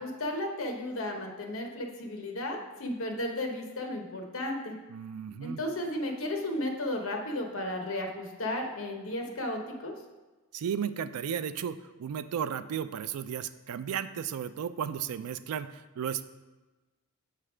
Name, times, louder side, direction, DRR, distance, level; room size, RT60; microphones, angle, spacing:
voice 1, 0.0-4.7 5.4-9.9, left 1 dB, 65° left, 2 dB, 1.0 m, -34 dB
voice 2, 4.9-5.6 10.5-16.3, right 8 dB, 80° right, 13 dB, 0.3 m, -34 dB
7.7 x 3.3 x 4.9 m, 1.2 s
head